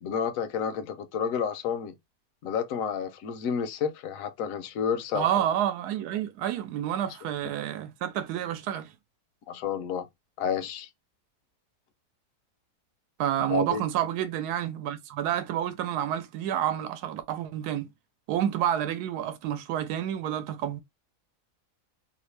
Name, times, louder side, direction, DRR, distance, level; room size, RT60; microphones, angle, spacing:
voice 1, 0.0-1.9 2.4-5.3 7.0-7.2 9.5-10.1 10.4-10.9 13.5-13.8, left 7 dB, 70° left, 0.9 m, -30 dB
voice 2, 5.1-8.9 13.2-17.9 18.3-20.8, right 11 dB, 85° right, 1.1 m, -29 dB
2.9 x 2.5 x 3.2 m
omnidirectional pair, 1.7 m